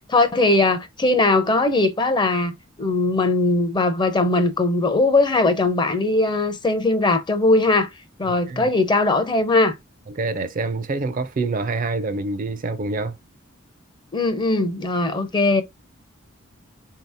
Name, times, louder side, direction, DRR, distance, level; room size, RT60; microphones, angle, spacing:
voice 1, 0.0-7.9 8.2-9.7 14.1-15.6, left 2 dB, 20° left, 0.5 m, -20 dB
voice 2, 8.3-8.7 10.2-13.2, right 3 dB, 40° right, 0.4 m, -26 dB
3.8 x 2.8 x 3.3 m
head